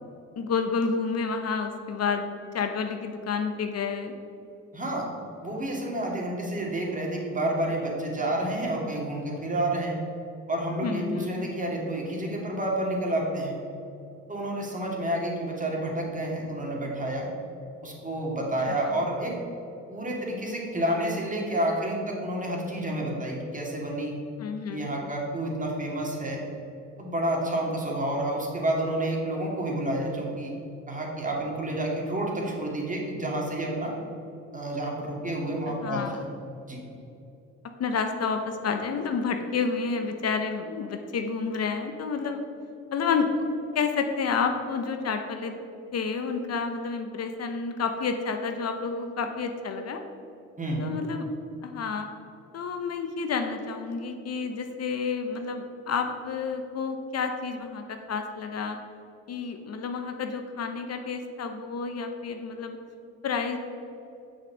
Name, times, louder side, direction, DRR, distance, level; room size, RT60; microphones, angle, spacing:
voice 1, 0.4-4.1 10.8-11.5 18.7-18.9 24.4-24.9 35.7-36.2 37.8-42.4 42.9-43.5 43.7-45.6 45.9-50.0 50.8-51.3 51.6-52.1 52.5-58.8 59.3-62.8 63.2-63.6, left 5 dB, 55° left, 6 dB, 0.9 m, -30 dB
voice 2, 4.7-5.1 5.4-10.0 10.5-13.6 14.3-17.3 17.8-19.4 19.9-24.1 24.7-26.4 27.0-30.5 30.9-33.9 34.5-36.3 36.6-36.8 50.6-50.8, right 1 dB, 25° right, -2 dB, 2.5 m, -29 dB
7.5 x 6.3 x 7.2 m, 2.7 s
cardioid pair, 90°, 30 cm